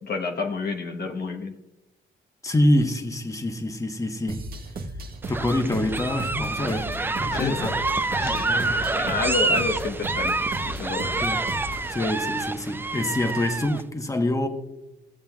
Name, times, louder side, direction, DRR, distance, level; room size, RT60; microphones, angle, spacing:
voice 1, 0.0-1.5 7.3-7.7 8.1-8.5 8.9-11.2, left 4 dB, 55° left, 1.1 m, -29 dB
voice 2, 2.4-4.4 5.3-6.9 7.2-7.8 8.2-8.9 11.2-11.4 11.9-14.5, left 1 dB, 15° left, 1.1 m, -26 dB
sound 1, 4.3-11.9, right 1 dB, 50° right, 1.2 m, -36 dB
sound 2, 5.2-13.8, right 3 dB, 10° right, 0.4 m, -27 dB
16.5 x 7.3 x 2.4 m
cardioid pair, 90°, 20 cm